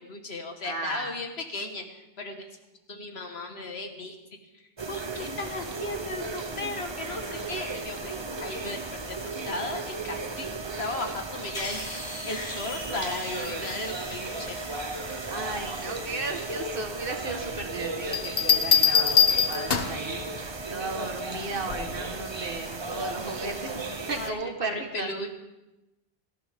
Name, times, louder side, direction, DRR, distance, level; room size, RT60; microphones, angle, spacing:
voice 1, 0.1-2.5 2.9-4.2 4.9-8.8 9.1-10.5 10.8-11.8 12.2-14.6 24.2-25.3, left 2 dB, 85° left, 5 dB, 1.8 m, -36 dB
voice 2, 0.6-1.2 15.3-25.1, right 3 dB, 60° right, 5 dB, 1.6 m, -35 dB
sound 1, 4.8-24.3, right 3 dB, 30° right, 0.8 m, -35 dB
sound 2, 11.5-16.7, equal, 45° left, 5.5 m, -41 dB
sound 3, 18.1-20.1 21.7-22.0, left 7 dB, 65° left, 1.2 m, -22 dB
18.0 x 14.0 x 3.6 m, 0.99 s
omnidirectional pair, 1.0 m